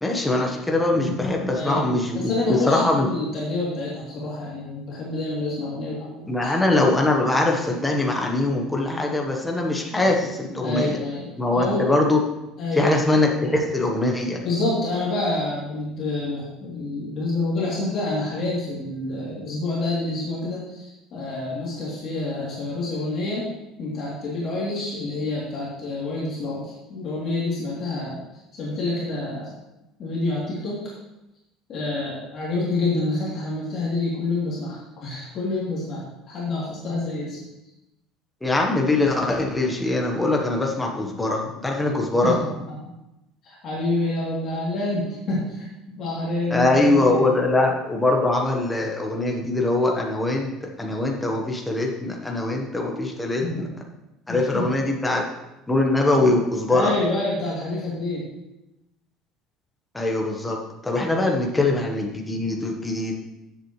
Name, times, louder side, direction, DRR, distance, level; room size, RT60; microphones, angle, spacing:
voice 1, 0.0-3.1 6.3-11.0 11.4-12.2 12.7-14.4 38.4-42.4 46.5-50.5 50.8-53.7 54.3-55.3 55.7-56.9 59.9-63.1, left 2 dB, 5° left, 0 dB, 1.1 m, -22 dB
voice 2, 1.5-1.9 2.1-6.5 10.6-11.9 12.6-12.9 14.4-23.5 23.8-28.2 28.5-29.5 30.0-30.9 31.7-37.5 42.2-42.7 43.4-47.3 53.4-53.7 54.3-54.7 56.7-58.3 60.9-61.4, left 2 dB, 35° left, -7 dB, 3.0 m, -28 dB
14.0 x 7.9 x 3.2 m, 0.94 s
cardioid pair, 175°, 0 cm